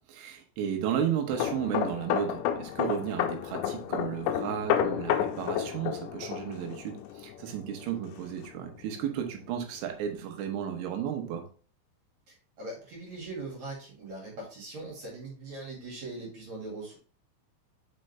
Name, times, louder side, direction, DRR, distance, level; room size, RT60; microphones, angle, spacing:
voice 1, 0.0-11.5, right 9 dB, 80° right, 4 dB, 3.4 m, -33 dB
sound 1, 1.3-8.8 9.1-9.4, left 9 dB, 85° left, 2.5 m, -31 dB
voice 2, 12.3-17.0, right 2 dB, 45° right, -3 dB, 2.6 m, -41 dB
6.5 x 5.2 x 3.3 m, 0.41 s
omnidirectional pair, 5.5 m